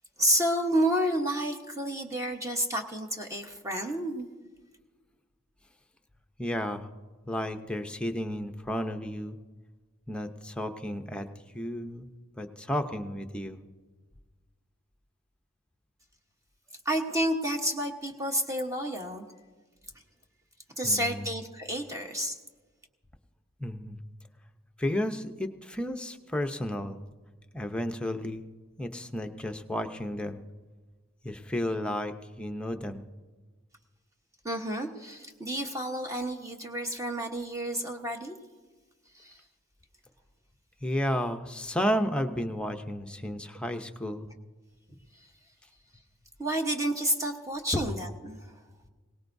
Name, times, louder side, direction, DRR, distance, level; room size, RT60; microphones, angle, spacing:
voice 1, 0.2-4.3 16.8-19.3 20.8-22.4 34.4-38.3 39.1-39.4 46.4-48.5, right 1 dB, 15° right, 2 dB, 1.1 m, -30 dB
voice 2, 6.4-6.9 7.3-9.4 10.1-11.3 11.5-12.1 12.4-13.6 20.8-21.3 23.6-24.0 24.8-27.0 27.5-28.4 28.8-30.4 31.2-33.0 40.8-44.3 47.7-47.9, equal, 5° left, 6 dB, 0.7 m, -32 dB
22.0 x 18.5 x 2.7 m, 1.3 s
head